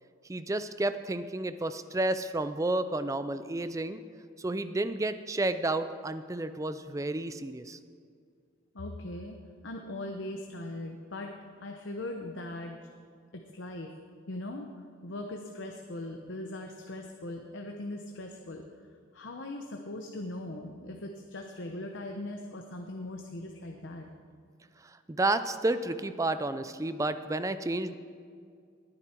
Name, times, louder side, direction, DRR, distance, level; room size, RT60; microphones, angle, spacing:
voice 1, 0.2-4.0 4.4-7.8 24.8-27.9, right 2 dB, 15° right, 12 dB, 0.4 m, -31 dB
voice 2, 8.7-12.8 13.5-13.9 14.3-14.7 15.0-18.6 19.1-24.1, left 1 dB, 65° left, 3 dB, 1.0 m, -40 dB
19.5 x 9.8 x 4.5 m, 2.2 s
head